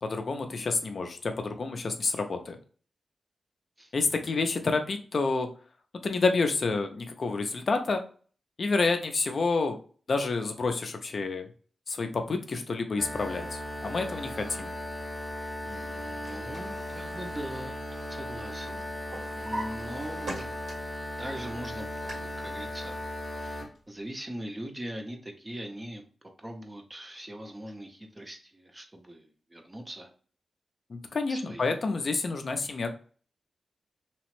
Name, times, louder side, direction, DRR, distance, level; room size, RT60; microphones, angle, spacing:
voice 1, 0.0-2.6 3.9-5.5 6.0-8.0 8.6-9.8 10.1-11.5 11.9-14.7 30.9-32.9, left 3 dB, 45° left, 6 dB, 0.3 m, -29 dB
sound 1, 13.0-23.7, left 1 dB, 30° left, 0.8 m, -37 dB
voice 2, 15.6-18.9 19.3-20.5 21.2-23.0 23.4-26.0 26.4-30.1 31.3-31.7, right 1 dB, 15° right, 4 dB, 0.4 m, -41 dB
Drawer open or close, 15.9-18.4 18.7-21.0 21.4-22.1, right 1 dB, 85° right, 1.4 m, -42 dB
2.8 x 2.0 x 2.9 m, 0.41 s
wide cardioid pair, 155°, 0 cm